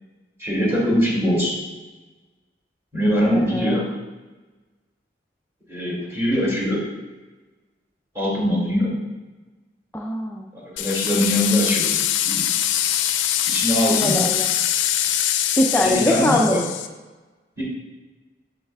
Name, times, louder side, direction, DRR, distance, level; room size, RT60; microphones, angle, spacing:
voice 1, 0.4-1.6 2.9-3.9 5.7-6.8 8.1-8.9 10.5-12.0 12.3-12.4 13.5-14.2 15.7-16.6 17.6-17.7, equal, 15° right, -6 dB, 2.3 m, -22 dB
voice 2, 3.2-3.8 9.9-10.5 13.9-14.5 15.6-16.6, left 1 dB, 10° left, -1 dB, 0.3 m, -22 dB
sound 1, 10.8-16.9, left 11 dB, 80° left, 0.4 m, -23 dB
7.4 x 7.1 x 2.3 m, 1.2 s
head